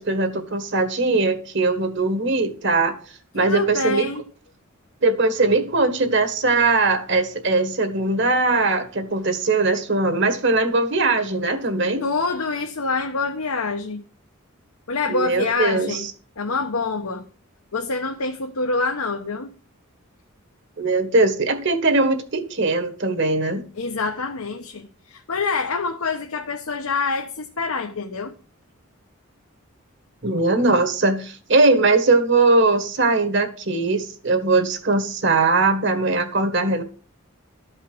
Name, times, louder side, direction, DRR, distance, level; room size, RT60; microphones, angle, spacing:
voice 1, 0.0-3.0 3.3-4.1 5.0-12.0 15.1-16.1 20.8-23.6 30.2-36.8, right 3 dB, 55° right, 1.8 m, -20 dB
voice 2, 3.4-4.2 12.0-14.0 14.9-16.1 16.4-17.2 17.7-19.5 23.7-28.3, left 4 dB, 85° left, 1.1 m, -26 dB
13.0 x 5.5 x 6.2 m
head